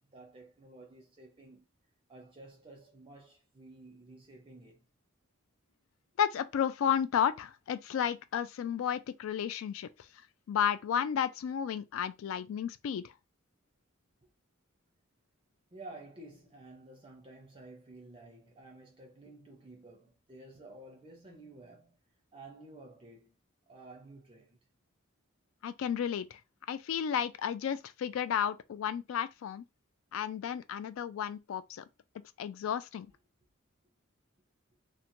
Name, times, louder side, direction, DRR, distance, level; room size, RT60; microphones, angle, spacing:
voice 1, 0.1-1.6 2.1-4.8 15.7-22.0 22.3-23.3 23.7-24.6, right 2 dB, 25° right, 0.5 m, -52 dB
voice 2, 6.2-9.9 10.5-13.1 25.6-26.4 26.7-29.6 30.1-31.8 32.4-33.1, left 8 dB, 75° left, 0.3 m, -32 dB
2.9 x 2.1 x 2.5 m
head